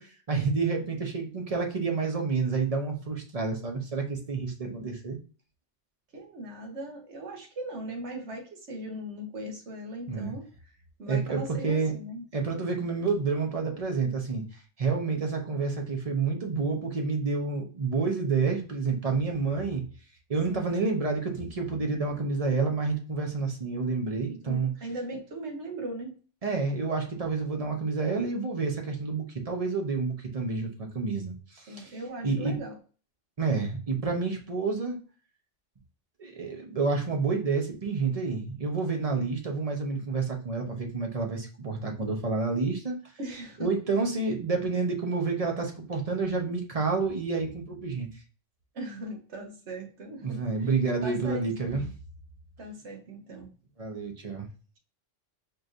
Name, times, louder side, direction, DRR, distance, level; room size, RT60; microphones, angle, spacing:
voice 1, 0.0-5.2 10.1-10.3 11.1-11.9 12.3-14.4 14.8-19.8 20.3-24.7 26.4-32.0 32.2-32.5 33.4-35.0 36.2-42.9 43.6-48.1 50.2-51.8 53.8-54.5, right 4 dB, 35° right, 2 dB, 0.9 m, -29 dB
voice 2, 6.1-10.5 11.0-12.2 20.5-20.8 24.5-26.1 31.7-32.7 43.2-43.7 48.7-50.7 51.0-51.9 52.6-53.5, right 1 dB, 65° right, 2 dB, 1.4 m, -39 dB
4.4 x 3.2 x 2.6 m, 0.38 s
omnidirectional pair, 1.3 m